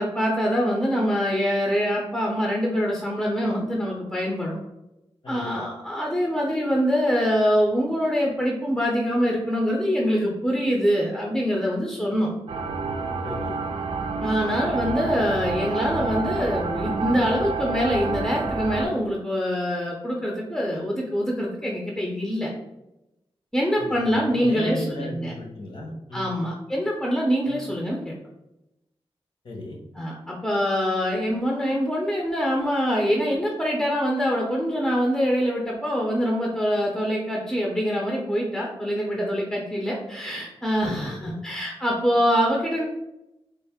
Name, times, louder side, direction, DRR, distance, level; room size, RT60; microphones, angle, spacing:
voice 1, 0.0-4.6 5.3-12.3 14.2-22.5 23.5-25.3 26.1-28.2 29.9-42.8, equal, 5° left, -2 dB, 0.5 m, -24 dB
sound 1, 12.5-18.9, right 4 dB, 65° right, 0.4 m, -29 dB
voice 2, 13.2-13.6 23.8-26.4 27.5-27.6 29.4-29.8 40.8-41.3, left 1 dB, 55° left, 0 dB, 1.0 m, -35 dB
3.5 x 2.5 x 3.5 m, 0.91 s
wide cardioid pair, 140°, 10 cm